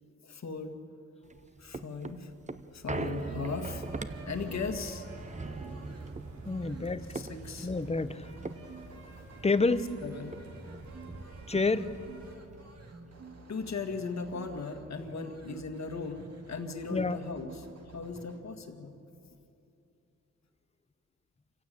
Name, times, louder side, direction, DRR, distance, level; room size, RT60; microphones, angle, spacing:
voice 1, 0.2-0.7 1.6-2.3 2.7-3.8 4.2-5.0 7.1-7.7 10.0-10.3 13.5-17.5 17.9-18.9, left 4 dB, 65° left, 5 dB, 1.9 m, -37 dB
sound 1, 1.2-10.0 10.3-10.4 10.7-12.1 12.5-12.6, right 3 dB, 25° right, 0.8 m, -42 dB
sound 2, 3.1-18.4, right 3 dB, 60° right, 2.4 m, -51 dB
sound 3, 3.2-12.3, right 3 dB, 75° right, 3.0 m, -49 dB
voice 2, 6.4-7.2 7.6-8.3 9.4-10.0 11.5-11.9 16.9-17.2, left 3 dB, 20° left, 12 dB, 0.8 m, -28 dB
27.5 x 15.5 x 8.6 m, 2.7 s
wide cardioid pair, 105°, 29 cm